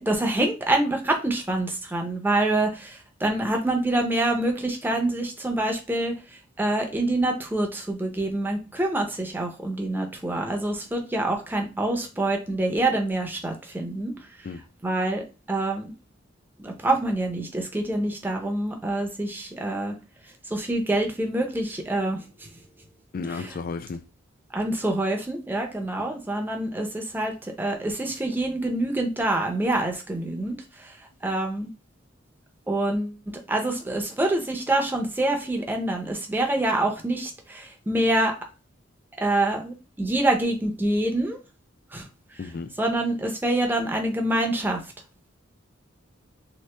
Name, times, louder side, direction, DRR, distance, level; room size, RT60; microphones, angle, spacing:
voice 1, 0.0-6.1 6.6-14.1 14.8-15.2 15.5-15.9 16.6-19.9 20.5-22.2 23.3-23.5 24.5-30.9 31.2-31.7 32.7-33.2 33.5-38.3 39.2-41.4 41.9-42.1 42.8-44.8, right 1 dB, 10° right, 0.5 m, -26 dB
voice 2, 23.1-24.0 26.0-26.1 42.4-42.7, left 4 dB, 45° left, 0.3 m, -33 dB
3.0 x 2.6 x 3.2 m
head